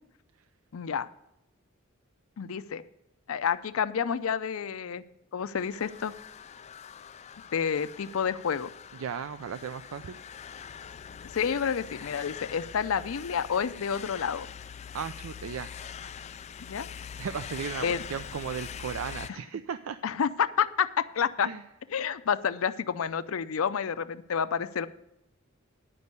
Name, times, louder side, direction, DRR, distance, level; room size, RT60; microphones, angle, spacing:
voice 1, 0.7-1.1 2.4-2.8 3.3-5.0 5.3-6.1 7.5-8.7 11.3-14.5 16.6-16.9 17.8-18.0 19.3-19.4 20.0-21.5 21.9-24.9, left 7 dB, 90° left, 13 dB, 0.5 m, -29 dB
sound 1, 5.6-19.3, left 7 dB, 35° left, 0.3 m, -43 dB
voice 2, 9.0-10.2 14.9-15.7 17.2-20.0 21.4-21.6, right 7 dB, 85° right, 11 dB, 0.4 m, -36 dB
10.0 x 5.3 x 8.1 m, 0.84 s
head